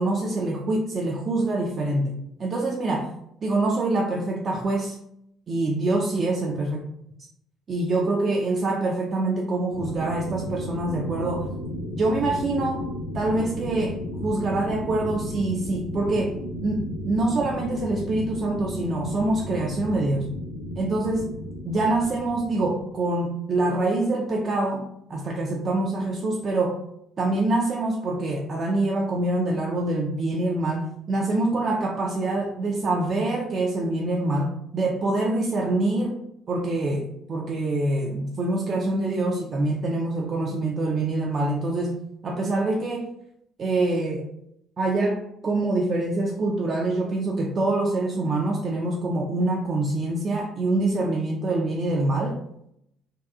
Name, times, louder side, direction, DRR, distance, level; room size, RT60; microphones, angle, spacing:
voice 1, 0.0-2.1 2.4-3.1 3.4-5.0 5.5-6.8 7.7-11.5 12.0-12.8 13.1-14.0 14.2-16.3 16.6-20.3 20.8-21.3 21.7-26.8 27.2-36.2 36.5-41.9 42.2-43.1 43.6-44.2 44.8-52.4, right 2 dB, 45° right, 0 dB, 0.4 m, -25 dB
sound 1, 9.7-23.0, left 1 dB, 90° left, 0.4 m, -34 dB
2.7 x 2.3 x 2.3 m, 0.75 s
figure-of-eight pair, 50°, 0 cm